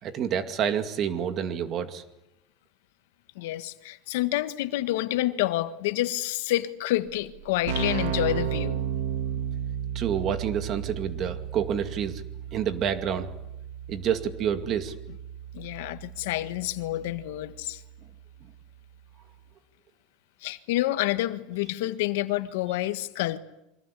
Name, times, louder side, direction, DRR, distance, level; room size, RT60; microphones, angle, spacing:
voice 1, 0.0-2.0 9.9-12.2 12.5-13.3 13.9-14.9, right 8 dB, 35° right, 2.3 m, -28 dB
voice 2, 3.3-8.8 15.5-17.8 20.4-23.4, left 15 dB, 85° left, 1.6 m, -28 dB
Keyboard (musical), 7.1-7.2 7.4-18.0, right 9 dB, 85° right, 2.8 m, -34 dB
28.0 x 24.5 x 8.5 m
cardioid pair, 160°, 0 cm